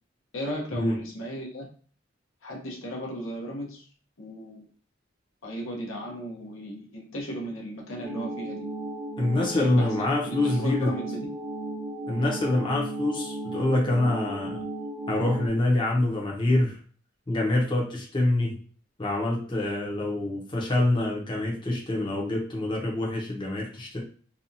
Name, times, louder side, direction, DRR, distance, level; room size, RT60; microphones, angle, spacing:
voice 1, 0.3-1.7 2.4-3.8 4.2-4.7 5.4-8.7 9.5-9.9 10.2-11.3, equal, 80° left, 0 dB, 0.8 m, -35 dB
sound 1, 8.0-15.5, right 1 dB, 45° right, 0.8 m, -35 dB
voice 2, 9.2-10.9 12.1-14.6 15.1-16.8 17.3-18.5 19.0-24.0, left 2 dB, 25° left, -2 dB, 0.7 m, -26 dB
2.7 x 2.2 x 2.6 m, 0.43 s
head